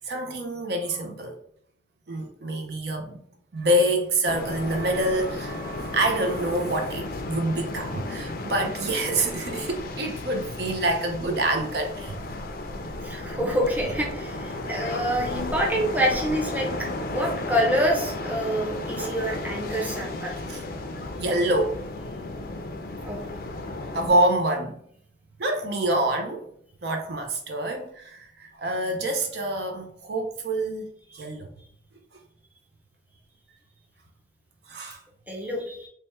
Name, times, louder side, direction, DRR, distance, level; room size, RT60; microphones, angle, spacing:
voice 1, 0.0-1.4 2.1-3.2 3.5-12.2 19.0-19.4 20.5-20.6 21.2-21.8 23.9-24.8 25.4-26.5 26.8-31.5 34.7-35.0, right 1 dB, 60° right, 0.5 m, -26 dB
sound 1, 4.3-24.1, left 2 dB, 50° left, 0.4 m, -34 dB
voice 2, 13.0-20.4 23.0-23.2 31.1-31.2 35.3-35.9, equal, 10° right, 0.6 m, -27 dB
3.3 x 2.1 x 4.2 m
head